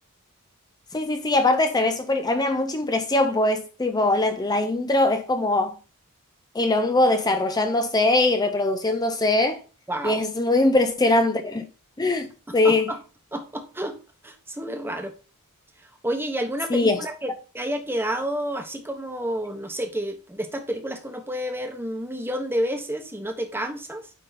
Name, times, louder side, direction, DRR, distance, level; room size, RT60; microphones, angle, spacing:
voice 1, 0.9-5.8 6.5-9.6 10.0-11.6 12.0-12.9 16.7-17.0, left 2 dB, 20° left, 0.6 m, -22 dB
voice 2, 9.9-10.2 12.5-13.0 13.3-14.0 14.2-15.1 16.0-24.0, right 1 dB, 10° right, 1.2 m, -30 dB
9.2 x 3.8 x 4.1 m
head